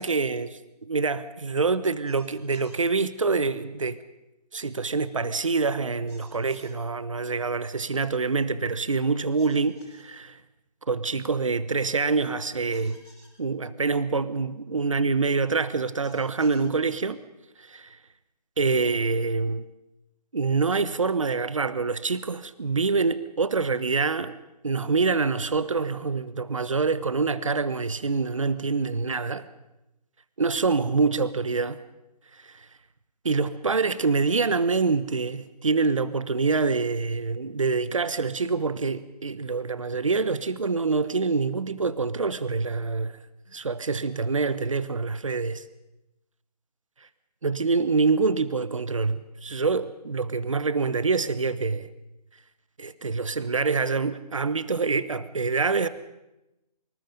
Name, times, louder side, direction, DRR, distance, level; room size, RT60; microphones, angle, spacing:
voice 1, 0.0-4.0 4.5-10.4 10.9-13.0 13.4-17.2 17.6-18.0 18.6-19.7 20.3-24.3 24.6-29.5 30.4-31.8 32.3-32.7 33.2-43.2 43.5-45.6 47.4-51.9 52.8-55.9, right 4 dB, 50° right, 15 dB, 1.2 m, -26 dB
sound 1, 2.1-2.8 6.1-6.7 9.4-10.0 12.7-13.3 16.0-16.7, equal, 5° right, 4.9 m, -54 dB
25.5 x 24.5 x 5.3 m, 0.92 s
hypercardioid pair, 180°, 21 cm